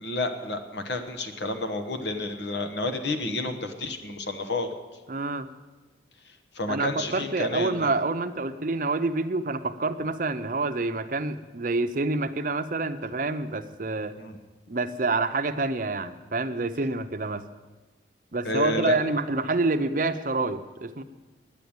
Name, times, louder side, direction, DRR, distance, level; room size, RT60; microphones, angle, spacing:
voice 1, 0.0-4.7 6.5-7.9 14.2-14.4 18.4-19.0, left 2 dB, 75° left, 7 dB, 1.2 m, -30 dB
voice 2, 5.1-5.5 6.7-14.1 14.7-17.4 18.3-21.0, right 3 dB, 45° right, 9 dB, 0.6 m, -27 dB
10.0 x 9.3 x 8.7 m, 1.2 s
head